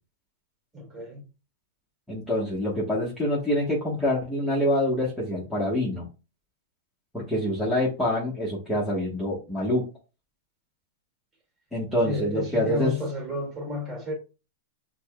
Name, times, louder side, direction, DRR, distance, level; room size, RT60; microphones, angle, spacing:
voice 1, 0.7-1.3 12.0-14.1, left 2 dB, 15° right, 2.1 m, -31 dB
voice 2, 2.1-6.0 7.1-9.8 11.7-12.9, left 1 dB, 5° left, 1.3 m, -26 dB
5.8 x 2.3 x 2.2 m
hypercardioid pair, 125°, 0 cm